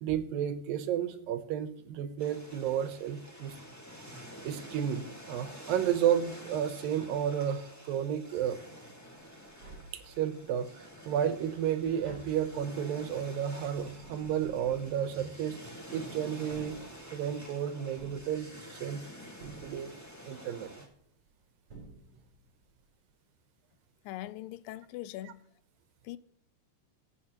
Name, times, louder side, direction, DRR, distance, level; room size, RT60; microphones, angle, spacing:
voice 1, 0.0-3.6 4.4-8.6 9.9-15.6 15.9-16.8 17.1-19.0 19.4-19.9 20.3-20.9 25.3-25.4, right 9 dB, 85° right, 2.7 m, -32 dB
sound 1, 2.2-20.9, equal, 20° left, 0.4 m, -49 dB
Tap, 9.5-10.6 11.0-15.8 16.4-17.4 18.0-18.9 19.4-20.2 21.3-21.4 21.7-22.5 22.8-22.9, right 3 dB, 40° right, 4.9 m, -52 dB
voice 2, 24.1-25.4 26.0-26.2, left 15 dB, 85° left, 2.2 m, -41 dB
21.5 x 8.3 x 2.9 m
omnidirectional pair, 3.9 m